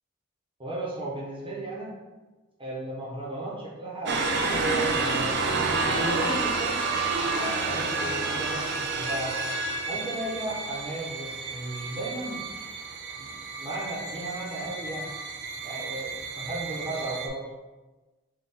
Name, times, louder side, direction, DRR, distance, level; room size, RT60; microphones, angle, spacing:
voice 1, 0.6-2.0 2.6-5.3 5.8-9.4 9.9-12.4 13.2-15.1 15.6-17.5, right 1 dB, 25° right, -5 dB, 1.1 m, -35 dB
sound 1, 4.1-17.3, right 3 dB, 60° right, 0.5 m, -30 dB
4.1 x 2.6 x 3.7 m, 1.2 s
head